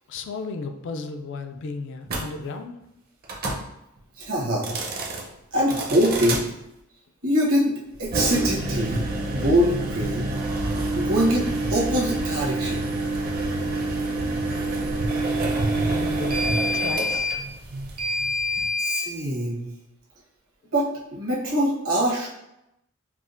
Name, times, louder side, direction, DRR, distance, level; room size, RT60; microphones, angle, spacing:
voice 1, 0.1-2.8 15.8-17.4, left 4 dB, 60° left, 7 dB, 0.3 m, -34 dB
sound 1, 2.1-2.2 3.2-3.6 4.5-5.2 5.7-6.4 8.0-19.0, right 1 dB, 45° right, 0.6 m, -26 dB
voice 2, 4.2-4.8 5.5-6.5 7.2-10.3 10.9-12.9 18.8-19.7 20.7-22.3, equal, 75° right, -4 dB, 1.1 m, -24 dB
4.7 x 2.1 x 2.5 m, 0.86 s
head